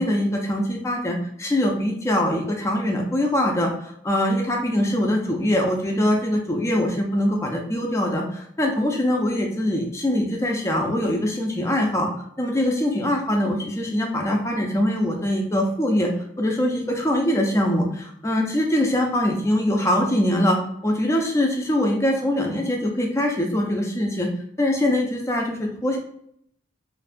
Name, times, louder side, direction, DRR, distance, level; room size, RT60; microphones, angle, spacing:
voice 1, 0.0-12.1 12.4-16.1 16.4-24.3 24.6-26.0, left 1 dB, 15° left, 1 dB, 0.3 m, -23 dB
2.5 x 2.2 x 2.5 m, 0.69 s
head